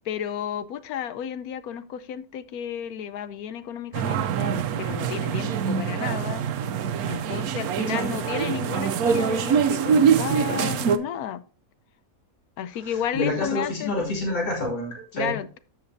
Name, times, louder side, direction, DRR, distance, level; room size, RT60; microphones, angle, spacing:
voice 1, 0.0-6.4 7.1-11.4 12.6-14.1 15.1-15.6, left 9 dB, 80° left, 1.2 m, -32 dB
sound 1, 3.9-11.0, right 7 dB, 75° right, 1.2 m, -24 dB
voice 2, 7.9-8.2 12.8-15.3, left 2 dB, 35° left, 2.7 m, -28 dB
13.5 x 5.3 x 2.7 m
omnidirectional pair, 1.6 m